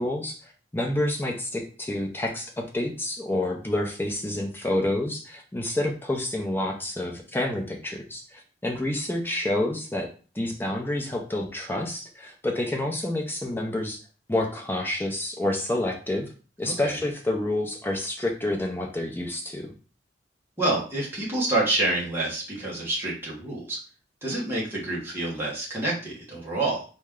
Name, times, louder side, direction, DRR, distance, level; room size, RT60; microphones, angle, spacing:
voice 1, 0.0-10.1 10.3-14.0 14.3-16.3 16.6-19.7, left 1 dB, 10° left, 1 dB, 0.6 m, -28 dB
voice 2, 20.6-23.8 24.2-26.8, right 2 dB, 15° right, -5 dB, 1.4 m, -27 dB
4.3 x 3.2 x 3.7 m, 0.37 s
head